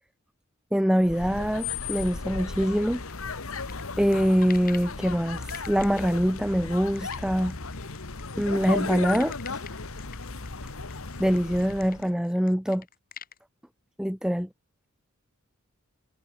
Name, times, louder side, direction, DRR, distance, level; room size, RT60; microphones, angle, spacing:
voice 1, 0.7-3.0 4.0-7.6 8.4-9.6 11.2-12.8 14.0-14.5, equal, 5° right, 1.1 m, -24 dB
sound 1, 1.0-12.1, left 4 dB, 70° left, 1.6 m, -35 dB
sound 2, 2.7-4.9 5.4-13.4, left 8 dB, 40° left, 4.1 m, -46 dB
head